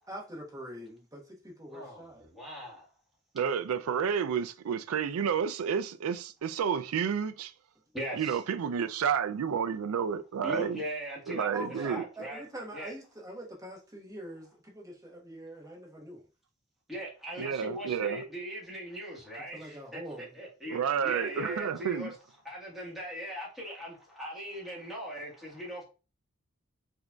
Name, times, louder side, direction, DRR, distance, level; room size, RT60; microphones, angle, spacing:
voice 1, 0.1-2.3 11.5-16.2 19.5-20.4, right 1 dB, 15° right, 1.1 m, -44 dB
voice 2, 1.7-2.9 7.9-8.4 10.4-12.4 12.7-12.9 16.9-22.1 22.4-25.8, equal, ahead, 1.4 m, -40 dB
voice 3, 3.3-7.5 8.1-10.8 11.3-12.0 17.4-18.2 20.7-22.1, right 7 dB, 85° right, 0.4 m, -30 dB
5.0 x 2.7 x 2.2 m
head